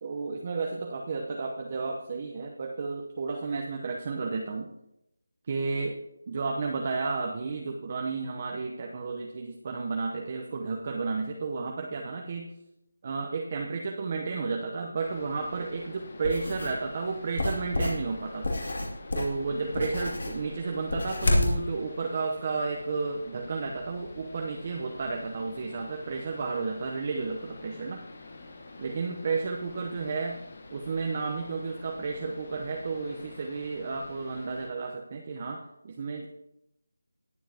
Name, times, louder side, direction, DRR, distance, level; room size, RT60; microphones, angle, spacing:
voice 1, 0.0-4.7 5.5-6.0 6.3-12.5 13.0-18.5 19.1-28.0 28.8-30.4 30.7-36.3, right 4 dB, 30° right, 1 dB, 0.8 m, -32 dB
sound 1, 15.0-34.7, left 2 dB, 40° left, 1.4 m, -47 dB
sound 2, 16.2-16.8 17.4-21.6, left 1 dB, 60° left, 2.5 m, -29 dB
19.0 x 7.5 x 2.9 m, 0.85 s
figure-of-eight pair, 170°, 0 cm